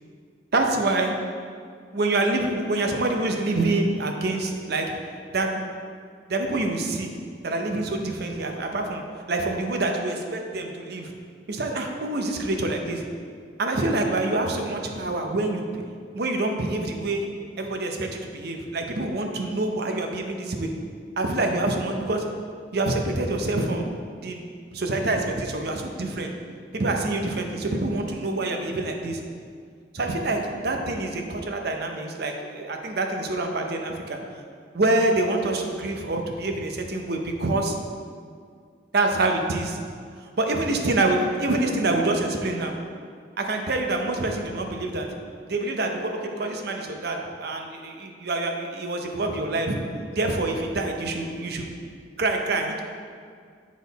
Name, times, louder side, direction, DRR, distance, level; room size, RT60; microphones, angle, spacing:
voice 1, 0.5-1.1 1.9-4.9 5.3-5.6 6.3-7.1 7.4-9.0 9.3-11.1 11.5-13.0 13.6-15.7 16.1-17.3 17.6-20.7 21.2-22.2 22.7-23.9 24.2-24.5 24.7-26.3 26.7-29.2 29.9-34.2 34.7-37.8 38.9-39.8 40.2-42.7 43.4-45.1 45.5-49.8 50.1-51.7 52.2-52.8, right 2 dB, 60° right, 3 dB, 0.7 m, -26 dB
7.3 x 4.2 x 4.1 m, 2.1 s
head